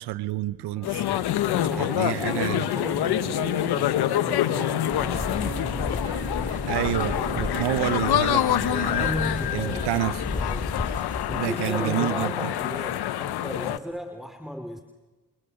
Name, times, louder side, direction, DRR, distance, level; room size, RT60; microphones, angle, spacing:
voice 1, 0.0-1.0 1.8-2.7 6.5-9.1 9.5-10.2 10.9-12.3, right 16 dB, 80° right, 17 dB, 0.9 m, -29 dB
voice 2, 0.7-5.5 8.7-10.9 11.3-14.8, equal, ahead, 6 dB, 2.8 m, -36 dB
sound 1, 0.8-13.8, left 12 dB, 75° left, 1.2 m, -26 dB
sound 2, 2.7-12.3, right 8 dB, 60° right, 2.1 m, -41 dB
sound 3, 4.9-11.4, left 2 dB, 20° left, 2.5 m, -33 dB
30.0 x 28.0 x 6.6 m, 1.2 s
hypercardioid pair, 40°, 40 cm